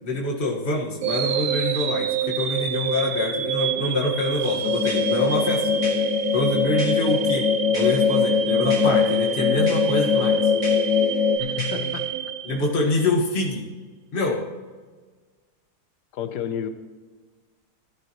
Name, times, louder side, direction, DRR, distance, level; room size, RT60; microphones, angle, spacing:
voice 1, 0.0-5.7 6.3-7.5 7.7-10.4 12.4-13.7 14.1-14.4, left 2 dB, 35° left, -2 dB, 1.7 m, -25 dB
sound 1, 1.0-13.1, right 9 dB, 65° right, 1.0 m, -28 dB
sound 2, 4.4-12.1, equal, 35° right, 4.7 m, -41 dB
sound 3, 4.6-11.4, left 7 dB, 60° left, 1.0 m, -22 dB
voice 2, 11.4-12.1 12.8-13.0 16.1-16.7, left 9 dB, 85° left, 10 dB, 1.5 m, -30 dB
16.5 x 11.5 x 3.1 m, 1.4 s
omnidirectional pair, 1.7 m